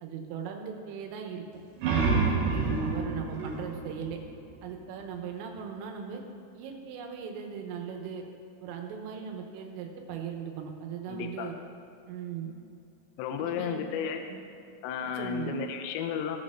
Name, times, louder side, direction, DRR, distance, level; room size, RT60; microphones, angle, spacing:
voice 1, 0.0-1.5 2.0-4.2 4.6-6.2 6.5-8.2 8.6-11.6 12.1-12.5 13.4-13.9 14.3-14.4 15.2-15.5, right 7 dB, 85° right, 3 dB, 3.6 m, -38 dB
sound 1, 1.5-5.0, right 4 dB, 70° right, 3.3 m, -29 dB
voice 2, 11.1-11.5 13.2-14.2 14.8-16.4, left 7 dB, 85° left, 4 dB, 2.7 m, -33 dB
18.0 x 6.4 x 3.8 m, 2.5 s
omnidirectional pair, 5.7 m